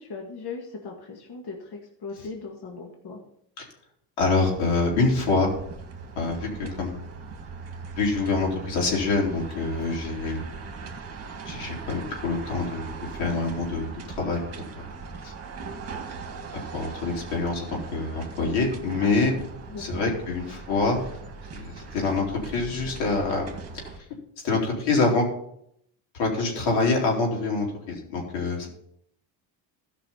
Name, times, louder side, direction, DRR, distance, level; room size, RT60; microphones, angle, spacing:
voice 1, 0.0-3.2 6.6-6.7 19.7-20.0, left 4 dB, 50° left, 1 dB, 2.0 m, -38 dB
voice 2, 4.2-5.5 6.2-6.9 8.0-10.4 11.4-14.4 14.8-14.9 15.2-15.3 16.7-17.6 17.9-19.3 19.8-21.0 21.5-23.5 24.4-25.2 26.1-28.7, left 3 dB, 90° left, -1 dB, 4.2 m, -25 dB
sound 1, 4.4-24.0, right 4 dB, 30° right, 1.9 m, -40 dB
14.0 x 5.9 x 5.6 m, 0.72 s
cardioid pair, 115°, 48 cm